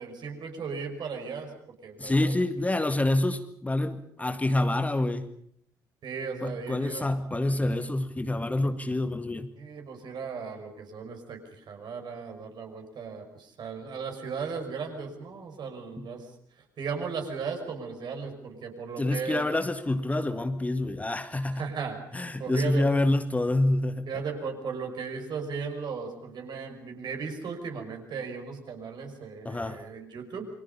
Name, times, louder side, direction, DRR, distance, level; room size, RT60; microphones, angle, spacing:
voice 1, 0.0-1.5 1.8-2.3 6.0-7.0 9.6-16.3 16.8-19.5 21.5-23.0 24.1-30.5, right 5 dB, 45° right, 4 dB, 5.7 m, -36 dB
voice 2, 2.0-5.3 6.4-9.5 16.0-16.1 19.0-21.6 22.1-24.1 29.5-29.8, left 2 dB, 15° left, 8 dB, 1.9 m, -27 dB
29.0 x 24.5 x 5.5 m, 0.64 s
figure-of-eight pair, 50°, 10 cm